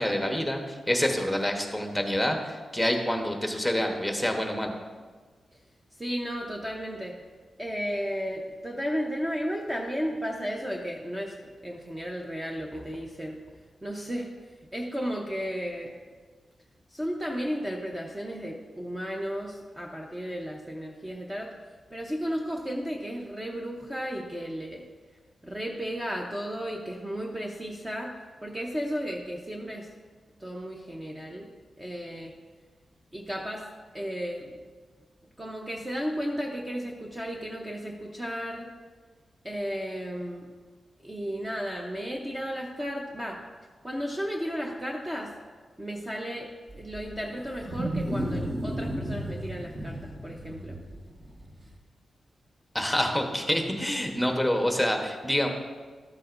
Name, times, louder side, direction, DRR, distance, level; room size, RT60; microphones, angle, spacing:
voice 1, 0.0-4.8 52.7-55.5, equal, 5° left, 3 dB, 1.0 m, -27 dB
voice 2, 6.0-7.2 7.6-11.4 11.6-13.4 13.8-14.3 14.7-15.9 16.9-21.5 21.9-24.8 25.4-28.1 28.4-29.9 30.4-31.5 31.8-32.3 33.1-33.7 33.9-34.6 35.4-38.7 39.4-40.5 41.0-43.4 43.8-45.3 45.8-46.5 46.7-50.8, equal, 15° right, 0 dB, 0.7 m, -34 dB
Wild animals, 46.7-51.7, right 1 dB, 35° right, 1.4 m, -34 dB
12.5 x 7.4 x 2.6 m, 1.5 s
wide cardioid pair, 105°, 0 cm